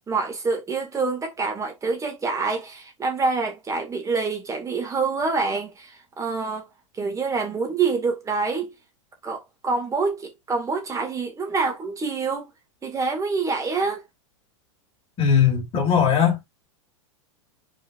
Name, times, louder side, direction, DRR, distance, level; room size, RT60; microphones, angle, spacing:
voice 1, 0.0-6.7 7.0-8.7 9.2-12.5 12.8-14.0, right 4 dB, 20° right, 2.3 m, -26 dB
voice 2, 15.2-16.4, left 7 dB, 35° left, 3.4 m, -19 dB
8.1 x 4.7 x 2.6 m
hypercardioid pair, 105°, 17 cm